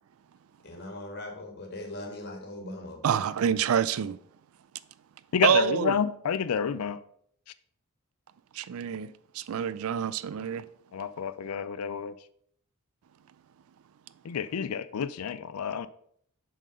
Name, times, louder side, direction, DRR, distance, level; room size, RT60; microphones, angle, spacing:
voice 1, 0.6-3.1, left 1 dB, 50° left, 1.6 m, -40 dB
voice 2, 3.0-4.2 5.4-6.0 8.5-10.7, right 8 dB, 70° right, 0.4 m, -27 dB
voice 3, 5.3-7.0 10.9-12.1 14.2-15.9, left 7 dB, 90° left, 0.4 m, -29 dB
7.4 x 4.0 x 5.1 m
head